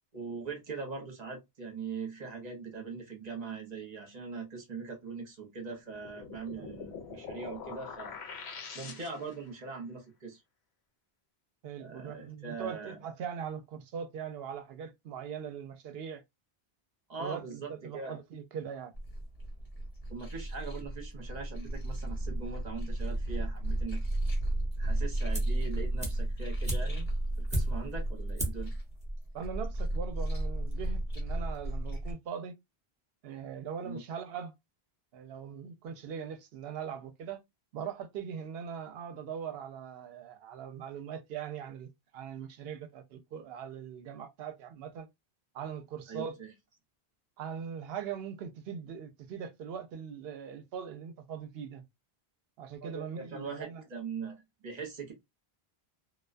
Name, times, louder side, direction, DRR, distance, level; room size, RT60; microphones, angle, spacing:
voice 1, 0.1-8.2 8.7-10.4 11.8-13.0 17.1-18.2 20.1-24.0 24.8-27.1 27.4-28.7 33.8-34.0 46.1-46.5 52.8-55.1, right 5 dB, 45° right, 0.9 m, -41 dB
sound 1, 5.9-9.5, left 6 dB, 85° left, 0.9 m, -44 dB
voice 2, 11.6-16.2 17.2-18.9 29.3-32.5 33.2-34.5 35.1-37.4 37.7-45.1 45.5-46.4 47.4-51.8 52.6-53.8, right 7 dB, 70° right, 0.8 m, -41 dB
sound 2, 18.9-32.1, right 1 dB, 50° left, 1.2 m, -33 dB
sound 3, 25.3-25.7 26.0-28.0 28.4-28.7 29.0-29.1, right 1 dB, 10° right, 0.6 m, -36 dB
2.3 x 2.2 x 2.4 m
omnidirectional pair, 1.1 m